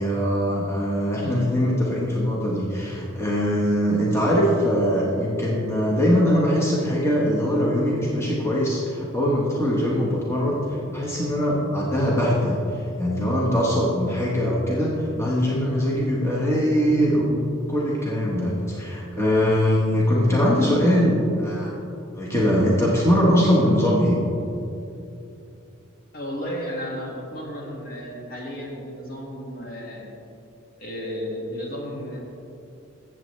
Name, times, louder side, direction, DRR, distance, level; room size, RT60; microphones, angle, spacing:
voice 1, 0.0-21.7 22.2-24.2, equal, 15° left, -5 dB, 1.1 m, -22 dB
voice 2, 26.1-30.1 30.8-32.2, equal, 45° left, -2 dB, 1.7 m, -33 dB
15.0 x 7.5 x 3.2 m, 2.7 s
head